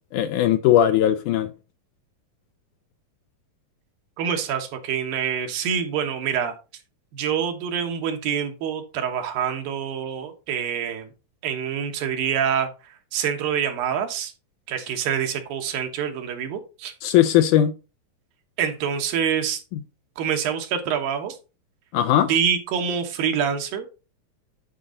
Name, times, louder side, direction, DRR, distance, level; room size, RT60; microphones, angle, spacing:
voice 1, 0.1-1.5 17.0-17.7 21.9-22.3, left 11 dB, 80° left, 1.9 m, -18 dB
voice 2, 4.2-6.5 7.1-11.1 11.4-14.3 14.7-16.9 18.6-19.6 20.2-21.4 22.2-23.9, right 8 dB, 80° right, 3.0 m, -26 dB
10.0 x 5.2 x 3.9 m
omnidirectional pair, 4.1 m